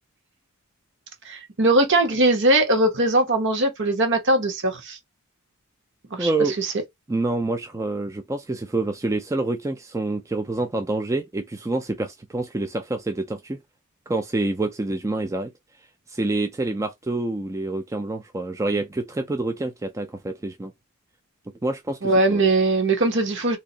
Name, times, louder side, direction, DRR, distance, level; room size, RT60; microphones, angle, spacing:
voice 1, 1.2-5.0 6.1-6.3 6.6-6.7 22.0-23.6, right 2 dB, 55° right, 1.1 m, -20 dB
voice 2, 6.2-6.6 7.1-13.6 14.1-15.5 15.8-20.7 21.6-22.4, right 2 dB, 15° right, 0.4 m, -27 dB
2.8 x 2.6 x 3.9 m
head